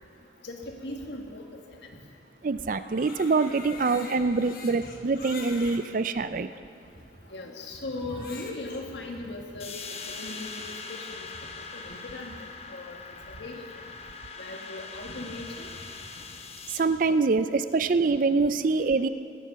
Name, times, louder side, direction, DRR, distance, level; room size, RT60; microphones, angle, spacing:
voice 1, 0.4-1.8 4.8-4.9 7.3-11.3 11.6-13.0 13.3-13.8 14.4-15.7, left 2 dB, 75° left, 2 dB, 1.8 m, -39 dB
voice 2, 2.4-6.5 16.7-19.1, right 4 dB, 45° right, 12 dB, 0.4 m, -25 dB
Crying sobbing, 2.7-5.8 6.6-6.7 8.0-8.8, left 4 dB, 50° left, 1.4 m, -44 dB
sound 1, 9.6-16.8, left 4 dB, 35° left, 0.9 m, -41 dB
19.0 x 7.5 x 6.8 m, 2.5 s
head